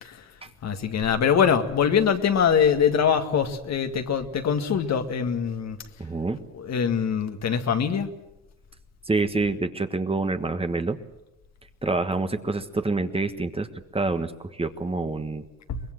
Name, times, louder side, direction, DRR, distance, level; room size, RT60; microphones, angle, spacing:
voice 1, 0.6-5.8 6.5-8.1 15.7-15.8, left 7 dB, 60° left, 7 dB, 1.9 m, -23 dB
voice 2, 6.0-6.4 9.1-11.0 11.8-13.7 13.9-15.4, right 3 dB, 20° right, 9 dB, 1.5 m, -27 dB
23.5 x 21.0 x 7.7 m, 0.92 s
cardioid pair, 90°, 30 cm